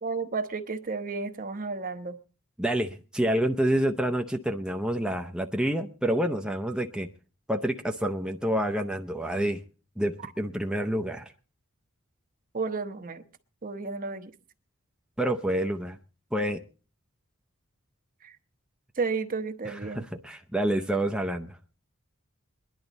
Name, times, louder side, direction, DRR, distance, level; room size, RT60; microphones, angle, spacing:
voice 1, 0.0-2.2 12.5-13.2 13.6-14.3 18.2-18.4 19.0-20.1, right 4 dB, 40° right, 9 dB, 0.9 m, -32 dB
voice 2, 2.6-7.1 7.5-9.6 10.0-11.3 15.2-16.0 16.3-16.6 19.7-21.6, right 1 dB, 5° right, 3 dB, 0.6 m, -28 dB
22.0 x 10.5 x 4.0 m, 0.37 s
head